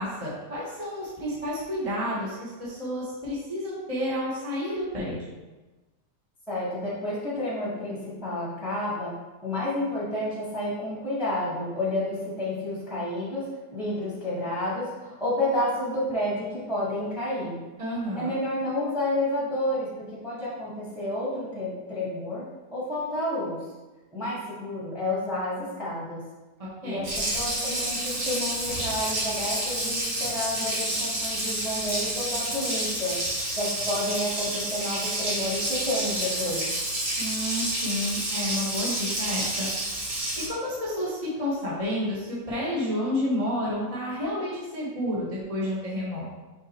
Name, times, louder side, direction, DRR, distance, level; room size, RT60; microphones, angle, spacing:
voice 1, 0.0-5.3 17.8-18.3 26.6-27.1 37.2-39.7 40.5-46.2, left 1 dB, 20° right, -7 dB, 1.3 m, -30 dB
voice 2, 6.5-9.1 9.4-17.6 18.1-22.4 22.7-23.6 24.1-26.2 26.8-33.2 33.5-36.7, left 1 dB, ahead, -7 dB, 1.5 m, -30 dB
Water tap faucet, 27.0-40.5, right 1 dB, 55° right, 2.2 m, -29 dB
6.3 x 5.0 x 3.1 m, 1.2 s
omnidirectional pair, 1.8 m